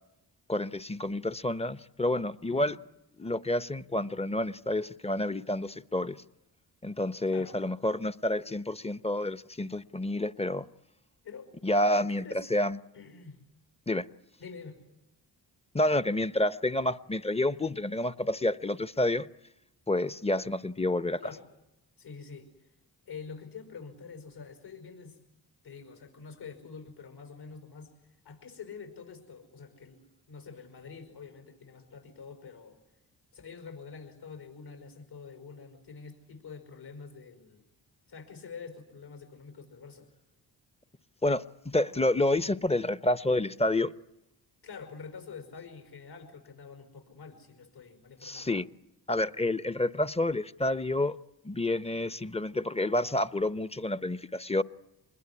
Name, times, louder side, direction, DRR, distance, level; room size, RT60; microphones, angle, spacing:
voice 1, 0.5-2.7 3.2-6.2 6.8-10.6 11.6-12.8 13.9-14.0 15.7-19.3 19.9-21.2 41.2-43.9 48.2-48.7 49.1-51.2 51.4-54.6, left 1 dB, 15° left, 0.9 m, -29 dB
voice 2, 7.3-7.6 11.2-11.5 12.0-12.5 12.9-13.4 14.4-14.8 21.2-21.5 22.0-22.5 23.1-25.2 25.6-27.9 28.2-32.8 33.3-37.6 38.1-40.1 44.6-48.5, left 5 dB, 65° left, 5.6 m, -46 dB
25.5 x 21.0 x 9.8 m
supercardioid pair, 50°, 43 cm